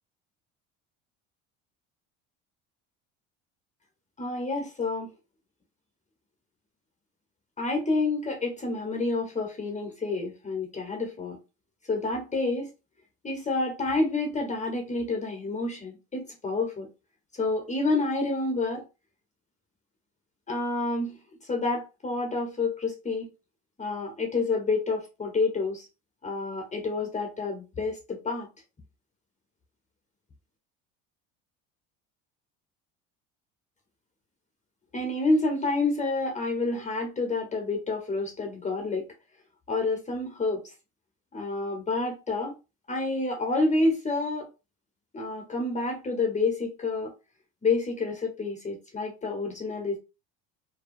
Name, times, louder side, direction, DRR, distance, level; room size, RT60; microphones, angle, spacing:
voice 1, 4.2-5.1 7.6-11.4 11.9-12.7 13.2-16.9 17.3-18.8 20.5-23.3 23.8-25.9 26.2-28.5 34.9-39.1 39.7-40.6 41.3-42.5 42.9-44.5 45.1-47.1 47.6-50.0, left 3 dB, 20° left, 0.9 m, -28 dB
2.7 x 2.2 x 2.5 m
supercardioid pair, 80°, 32 cm